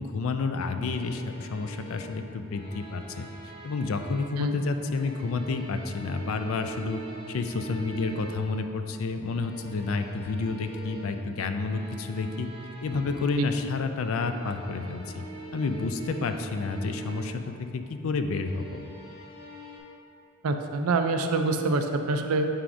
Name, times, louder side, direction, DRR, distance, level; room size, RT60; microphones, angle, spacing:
voice 1, 0.0-3.3 3.6-7.0 7.3-12.5 12.8-15.2 15.5-18.8, left 4 dB, 70° left, 7 dB, 0.4 m, -30 dB
sound 1, 0.8-4.5 4.8-8.6 9.2-13.5 13.9-17.4 18.2-19.8, right 2 dB, 25° left, 1.2 m, -44 dB
voice 2, 20.4-22.5, right 3 dB, 85° right, 6 dB, 0.5 m, -25 dB
8.9 x 4.8 x 2.6 m, 2.8 s
head